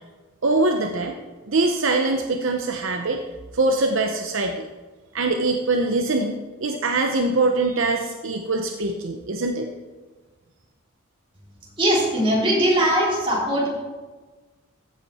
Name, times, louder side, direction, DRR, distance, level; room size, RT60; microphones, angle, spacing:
voice 1, 0.4-1.2 1.5-3.2 3.5-4.6 5.1-9.7, right 2 dB, 60° right, 4 dB, 0.7 m, -23 dB
voice 2, 11.8-13.7, right 1 dB, 25° right, -5 dB, 3.5 m, -20 dB
15.0 x 8.3 x 4.2 m, 1.3 s
head